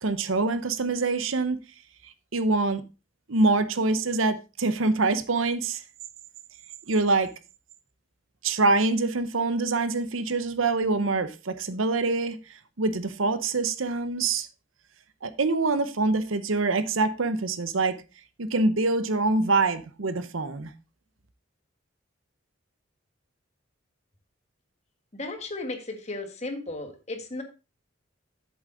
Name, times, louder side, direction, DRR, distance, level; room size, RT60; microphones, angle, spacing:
voice 1, 0.0-1.6 2.3-2.8 3.3-5.8 6.9-7.3 8.4-12.4 12.8-14.5 15.2-18.0 18.4-20.7, right 3 dB, 90° right, 0.9 m, -25 dB
voice 2, 25.1-27.4, left 2 dB, 35° left, 1.5 m, -35 dB
8.3 x 7.2 x 3.8 m
head